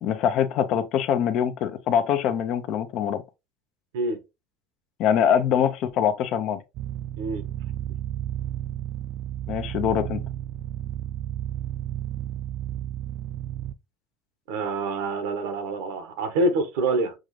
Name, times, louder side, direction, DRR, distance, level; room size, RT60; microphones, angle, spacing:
voice 1, 0.0-3.2 5.0-6.6 9.5-10.2, left 9 dB, 60° left, 0.7 m, -23 dB
sound 1, 6.7-13.7, right 12 dB, 55° right, 0.4 m, -32 dB
voice 2, 14.5-17.1, right 2 dB, 85° right, 1.1 m, -26 dB
6.2 x 2.5 x 3.1 m
supercardioid pair, 110°, 0 cm